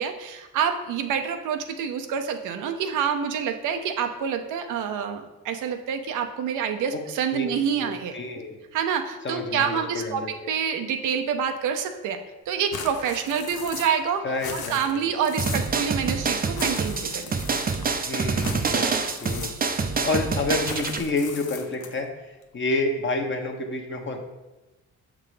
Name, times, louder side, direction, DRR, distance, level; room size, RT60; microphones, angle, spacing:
voice 1, 0.0-8.1 8.7-10.2 10.5-12.2 12.5-14.2 14.5-17.4 17.8-18.0, right 7 dB, 85° right, 6 dB, 0.7 m, -27 dB
voice 2, 7.8-8.6 9.2-10.3 14.2-15.1 18.1-18.9 19.2-19.5 20.0-24.2, left 2 dB, 40° left, 3 dB, 1.1 m, -29 dB
sound 1, 12.7-14.1 14.3-15.8 16.5-18.0 18.4-19.9 20.6-22.1, left 7 dB, 80° left, 0.7 m, -39 dB
sound 2, 15.4-21.0, right 4 dB, 30° right, 0.6 m, -26 dB
6.6 x 3.7 x 4.9 m, 1.1 s
cardioid pair, 90°, 30 cm